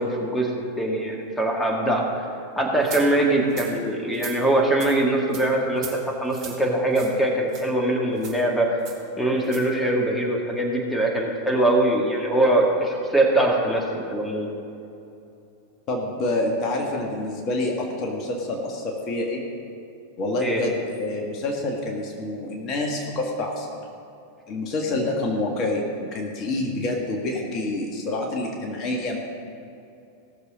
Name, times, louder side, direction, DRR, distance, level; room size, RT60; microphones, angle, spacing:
voice 1, 0.0-2.2 2.6-8.7 9.2-14.5 20.4-20.6, right 1 dB, 5° left, -1 dB, 1.9 m, -22 dB
sound 1, 2.8-3.0 3.5-3.7 4.1-4.4 4.8-4.9 5.3-5.4 5.8-5.9 6.3-6.6 6.9-7.1 7.5-7.6 8.2-8.4 8.8-9.0 9.4-9.6, right 6 dB, 35° right, 3.2 m, -37 dB
voice 2, 15.9-19.4 20.2-23.7 24.5-29.2, left 2 dB, 35° left, 0 dB, 1.6 m, -27 dB
17.5 x 6.9 x 5.2 m, 2.7 s
figure-of-eight pair, 90°, 0 cm